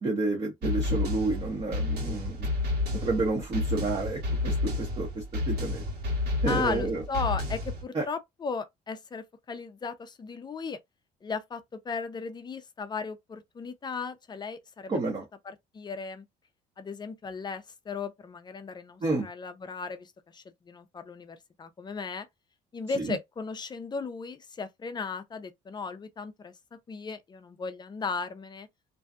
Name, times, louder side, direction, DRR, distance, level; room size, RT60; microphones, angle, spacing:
voice 1, 0.0-2.5 3.0-5.8 6.4-7.0 7.9-8.0 14.9-15.2 19.0-19.3 22.9-23.2, right 3 dB, 35° right, 0.8 m, -30 dB
sound 1, 0.6-7.8, left 2 dB, 70° right, 1.3 m, -30 dB
voice 2, 6.5-10.8 11.2-15.0 15.5-16.2 16.8-22.3 22.7-28.7, left 5 dB, 25° left, 0.4 m, -36 dB
2.6 x 2.2 x 2.3 m
cardioid pair, 110°, 17 cm